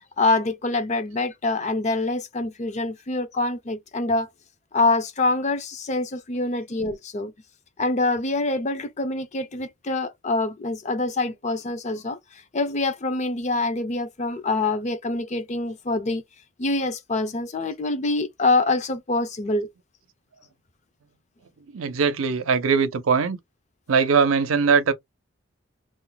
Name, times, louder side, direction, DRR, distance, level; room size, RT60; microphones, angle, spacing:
voice 1, 0.2-4.3 4.7-7.3 7.8-12.2 12.5-16.2 16.6-19.7, left 2 dB, 35° left, 0.5 m, -25 dB
voice 2, 21.7-23.4 23.9-24.9, right 5 dB, 85° right, 0.6 m, -21 dB
2.5 x 2.2 x 3.8 m
head